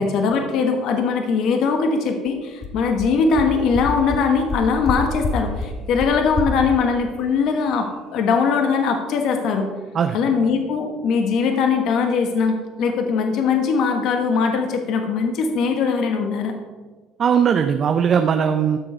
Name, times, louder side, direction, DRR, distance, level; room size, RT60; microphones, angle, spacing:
voice 1, 0.0-9.7 10.1-16.5, left 5 dB, 65° left, 4 dB, 1.2 m, -21 dB
sound 1, 2.3-2.4 2.6-2.7 3.0-3.1 3.4-3.5 3.7-3.8 4.1-4.2 4.5-4.9 5.2-5.3 5.6-5.7 6.0-6.1 6.4-6.5, left 4 dB, 35° left, 1.6 m, -26 dB
voice 2, 17.2-18.8, right 7 dB, 45° right, 7 dB, 0.6 m, -19 dB
13.0 x 6.5 x 4.4 m, 1.4 s
cardioid pair, 100°, 0 cm